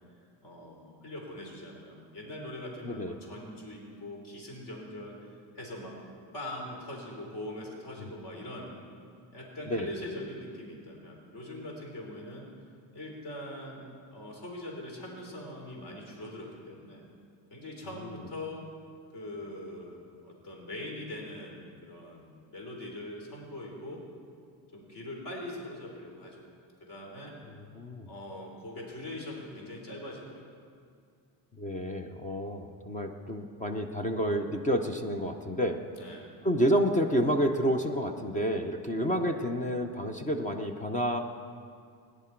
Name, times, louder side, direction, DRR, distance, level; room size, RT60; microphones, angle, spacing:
voice 1, 0.4-5.1 5.5-6.0 6.3-8.7 9.3-12.5 12.9-13.8 14.1-17.0 17.5-18.7 19.1-24.0 24.7-26.4 26.8-27.3 28.1-30.4 35.9-36.3, left 1 dB, 45° left, -1 dB, 3.2 m, -42 dB
voice 2, 2.8-3.2 8.0-8.1 9.7-9.9 27.7-28.1 31.6-35.8 36.4-41.2, equal, 15° left, 6 dB, 0.5 m, -29 dB
17.5 x 10.5 x 4.5 m, 2.2 s
cardioid pair, 145°, 47 cm